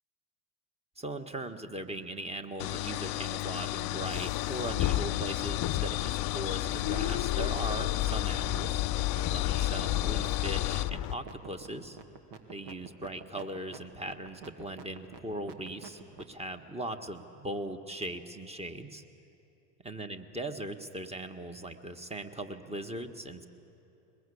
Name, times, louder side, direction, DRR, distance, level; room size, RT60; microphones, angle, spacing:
voice 1, 1.0-8.8 9.3-12.0 12.5-16.0 16.3-19.0 19.8-23.5, right 1 dB, 10° right, 7 dB, 1.5 m, -39 dB
sound 1, 2.6-10.9, left 18 dB, 80° left, 0.6 m, -34 dB
sound 2, 4.1-11.1, left 13 dB, 40° left, 0.8 m, -32 dB
sound 3, 7.8-8.2 8.4-16.4, right 6 dB, 75° right, 2.0 m, -47 dB
22.0 x 20.5 x 8.5 m, 2.9 s
hypercardioid pair, 80°, 50 cm